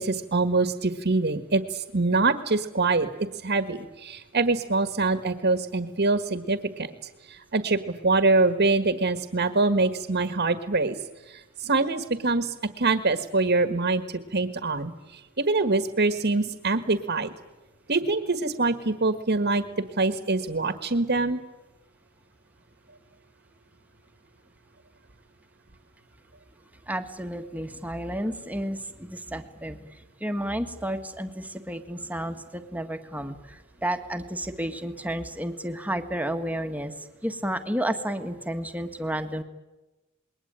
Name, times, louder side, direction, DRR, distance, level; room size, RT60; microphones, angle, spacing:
voice 1, 0.0-3.1 3.4-6.9 7.3-11.0 11.3-17.3 17.9-21.4, right 3 dB, 50° right, 10 dB, 1.6 m, -24 dB
voice 2, 26.9-39.4, right 1 dB, 5° right, 7 dB, 1.6 m, -32 dB
28.0 x 21.5 x 9.0 m, 1.1 s
head